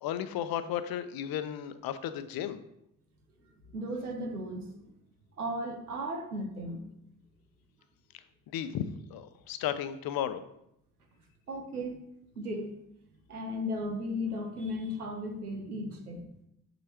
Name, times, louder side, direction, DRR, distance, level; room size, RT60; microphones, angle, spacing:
voice 1, 0.0-2.6 8.5-8.8 9.1-10.4, left 10 dB, 55° left, 11 dB, 0.8 m, -34 dB
voice 2, 3.7-4.9 5.4-6.9 11.5-12.0 12.4-12.7 13.3-16.2, equal, 90° right, 3 dB, 0.9 m, -35 dB
7.9 x 7.6 x 3.0 m, 0.79 s
figure-of-eight pair, 40°, 44 cm